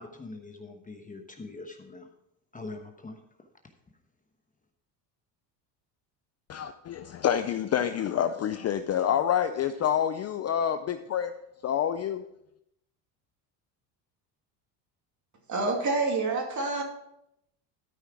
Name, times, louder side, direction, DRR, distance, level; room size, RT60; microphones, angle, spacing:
voice 1, 0.0-2.1 2.5-3.2, left 3 dB, 15° left, 4 dB, 1.1 m, -43 dB
voice 2, 6.5-11.3 11.6-12.3, left 9 dB, 35° left, 10 dB, 0.5 m, -27 dB
voice 3, 15.5-16.8, right 3 dB, 35° right, 2 dB, 2.6 m, -27 dB
13.0 x 5.6 x 4.7 m, 0.80 s
supercardioid pair, 95°, 49 cm